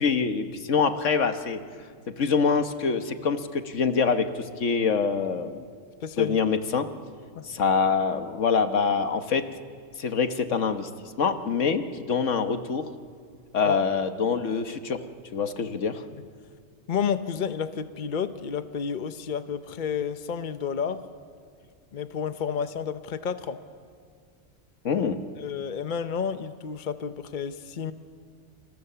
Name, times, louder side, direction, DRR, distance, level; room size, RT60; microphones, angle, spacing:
voice 1, 0.0-1.6 2.1-5.6 6.2-6.9 7.4-9.5 10.0-10.9 11.2-12.9 13.5-15.0 15.3-16.0 24.8-25.2, left 5 dB, 85° left, 8 dB, 1.6 m, -25 dB
voice 2, 6.0-6.4 7.3-7.5 13.6-13.8 16.1-16.2 16.9-21.1 21.9-23.6 25.4-27.9, left 7 dB, 45° left, 10 dB, 1.0 m, -31 dB
28.5 x 28.0 x 6.9 m, 2.1 s
omnidirectional pair, 1.2 m